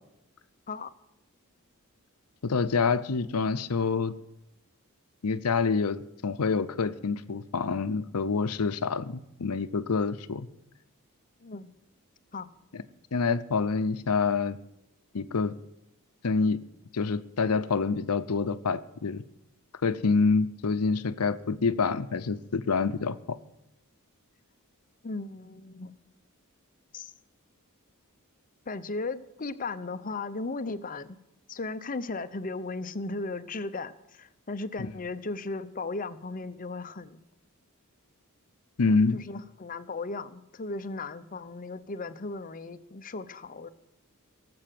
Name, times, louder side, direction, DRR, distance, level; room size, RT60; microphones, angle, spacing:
voice 1, 2.4-4.1 5.2-10.5 13.1-14.6 15.1-15.5 16.2-16.6 16.9-19.2 19.8-23.4 34.8-34.9 38.8-39.2, left 4 dB, 90° left, 12 dB, 0.7 m, -27 dB
voice 2, 11.4-11.7 12.3-12.5 25.0-25.9 26.9-27.1 28.7-31.2 31.5-37.2 38.9-43.7, left 3 dB, 40° left, 12 dB, 0.7 m, -36 dB
18.0 x 7.8 x 7.6 m, 0.86 s
head